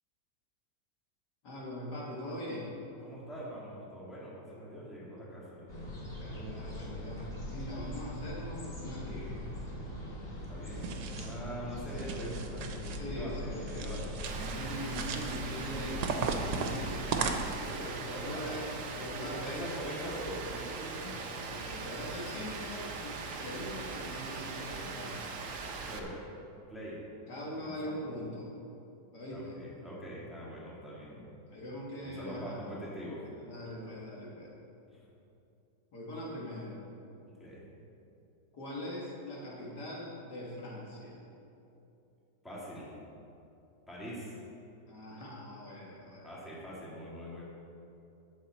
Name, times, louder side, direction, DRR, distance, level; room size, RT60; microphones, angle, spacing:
voice 1, 1.4-2.8 5.1-5.2 6.2-9.5 12.8-14.0 14.4-16.1 16.5-17.1 18.0-18.7 18.9-19.6 21.4-25.3 27.3-28.5 29.1-29.6 31.5-32.6 33.4-34.5 35.9-36.8 38.5-41.2 44.9-46.3, left 1 dB, 65° left, -5 dB, 2.4 m, -42 dB
voice 2, 3.0-5.7 10.3-12.7 13.0-14.2 16.6-21.3 25.8-26.2 26.7-27.0 27.5-28.0 29.3-31.2 32.0-33.2 34.9-35.0 37.3-37.7 42.4-42.9 43.9-44.4 46.2-47.4, equal, ahead, -7 dB, 2.2 m, -43 dB
sound 1, 5.7-16.9, left 1 dB, 35° left, 2.1 m, -41 dB
sound 2, 10.7-11.4 11.9-13.0 13.7-14.6 14.8-15.4 16.0-17.8, right 5 dB, 80° right, 1.4 m, -36 dB
Rain, 14.2-26.0, right 4 dB, 55° right, 1.1 m, -40 dB
12.0 x 8.1 x 4.2 m, 2.8 s
omnidirectional pair, 1.9 m